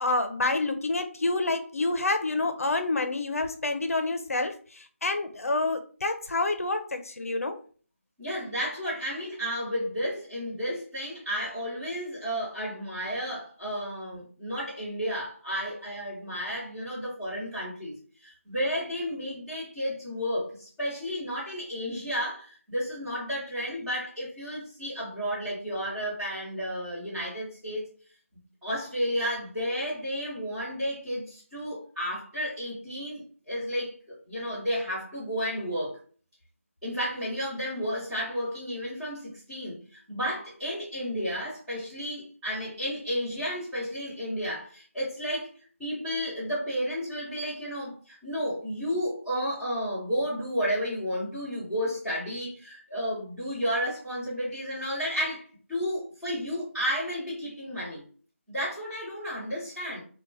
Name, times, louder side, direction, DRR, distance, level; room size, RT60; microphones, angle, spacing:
voice 1, 0.0-7.6, left 2 dB, 85° left, 0.5 m, -28 dB
voice 2, 8.2-27.9 28.6-36.0 36.8-45.5 45.8-58.0 58.5-60.0, equal, 5° right, 0.9 m, -32 dB
2.8 x 2.1 x 2.6 m
figure-of-eight pair, 170°, 8 cm